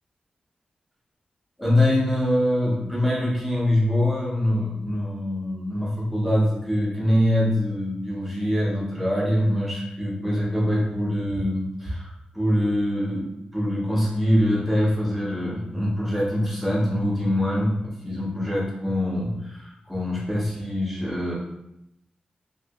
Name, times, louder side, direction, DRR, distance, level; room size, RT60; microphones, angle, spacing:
voice 1, 1.6-21.4, left 1 dB, 5° right, -5 dB, 0.8 m, -24 dB
2.7 x 2.4 x 3.5 m, 0.82 s
wide cardioid pair, 155°, 3 cm